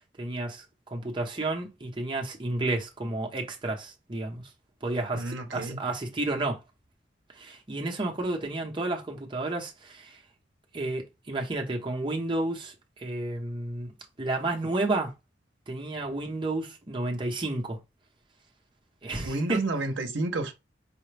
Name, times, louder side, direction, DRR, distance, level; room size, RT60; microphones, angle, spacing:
voice 1, 0.2-4.4 4.8-6.6 7.3-10.2 10.7-13.9 14.2-15.1 15.7-17.8 19.0-19.6, right 2 dB, 25° right, 0.8 m, -31 dB
voice 2, 5.1-5.8 19.2-20.5, right 2 dB, 85° right, 0.7 m, -30 dB
4.9 x 2.1 x 3.2 m
head